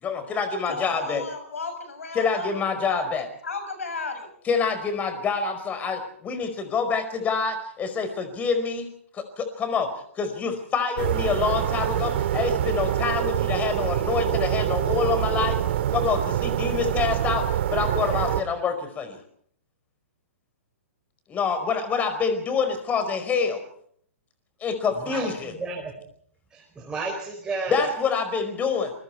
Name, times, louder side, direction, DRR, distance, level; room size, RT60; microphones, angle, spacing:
voice 1, 0.0-1.3 2.1-3.3 4.5-9.9 10.2-15.6 15.9-19.2 21.3-23.6 24.6-25.5 27.7-28.9, left 5 dB, 20° left, 10 dB, 4.9 m, -26 dB
voice 2, 0.7-4.3, left 4 dB, 80° left, 8 dB, 6.8 m, -35 dB
sound 1, 11.0-18.4, right 11 dB, 55° right, 2.0 m, -25 dB
voice 3, 24.9-25.9 26.5-27.9, right 3 dB, 10° right, 0 dB, 4.7 m, -33 dB
27.0 x 23.0 x 4.6 m, 0.63 s
hypercardioid pair, 120°, 7 cm